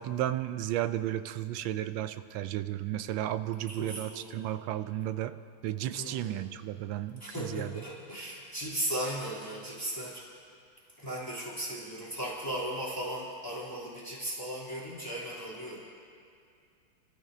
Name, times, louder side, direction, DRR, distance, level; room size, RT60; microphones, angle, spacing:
voice 1, 0.0-5.4 5.6-7.8, right 12 dB, 80° right, 11 dB, 1.3 m, -33 dB
voice 2, 3.7-4.3 6.0-6.5 7.2-10.2 11.0-15.8, right 1 dB, 10° left, -7 dB, 3.0 m, -37 dB
28.5 x 14.5 x 2.7 m, 2.4 s
omnidirectional pair, 2.1 m